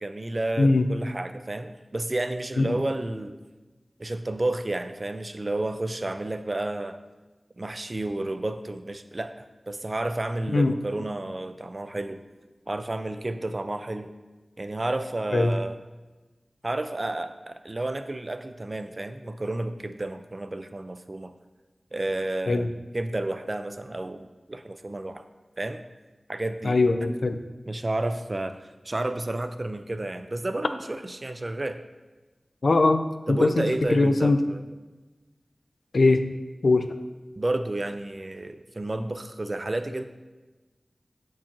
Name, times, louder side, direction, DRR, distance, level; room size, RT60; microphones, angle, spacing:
voice 1, 0.0-3.4 4.0-7.0 7.6-12.2 12.7-14.1 14.6-15.8 16.6-21.3 21.9-22.7 22.9-25.2 25.6-25.8 26.3-26.8 27.7-28.6 28.8-31.8 33.3-34.7 37.4-40.0, right 2 dB, 45° right, 9 dB, 0.4 m, -31 dB
voice 2, 0.6-0.9 2.6-2.8 10.5-10.7 15.3-15.5 22.5-22.7 26.6-27.4 32.6-34.4 35.9-36.2 36.6-36.9, left 2 dB, 90° left, 8 dB, 0.4 m, -21 dB
7.1 x 4.5 x 3.0 m, 1.2 s
wide cardioid pair, 60°, 0 cm